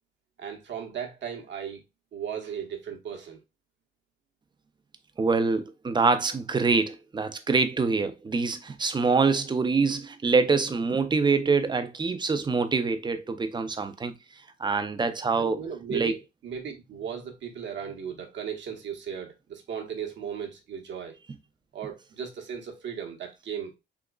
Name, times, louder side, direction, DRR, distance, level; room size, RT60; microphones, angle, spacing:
voice 1, 0.4-1.8 2.1-3.4 15.4-16.2 16.4-21.2 21.7-23.7, right 8 dB, 65° right, 1.0 m, -36 dB
voice 2, 5.2-14.1 14.6-15.6 15.9-16.1, right 4 dB, 20° right, 0.5 m, -25 dB
3.8 x 2.9 x 2.2 m
cardioid pair, 90°, 20 cm